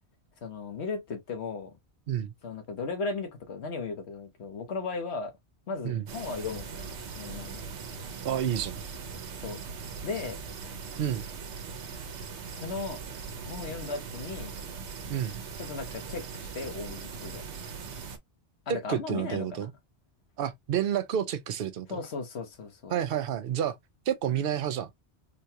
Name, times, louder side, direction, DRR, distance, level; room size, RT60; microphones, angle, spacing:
voice 1, 0.4-1.7 2.4-5.3 5.7-7.6 9.4-9.6 10.0-10.4 12.5-13.0 13.5-14.6 15.6-17.5 18.7-19.7 21.9-22.9, left 4 dB, 75° left, 1.3 m, -36 dB
sound 1, 6.1-18.2, right 5 dB, 80° right, 1.1 m, -40 dB
voice 2, 8.2-8.8 11.0-11.2 15.1-15.4 18.7-19.7 20.4-22.0 22.9-23.8 24.1-24.9, right 9 dB, 60° right, 0.8 m, -29 dB
3.8 x 2.3 x 2.7 m
omnidirectional pair, 1.1 m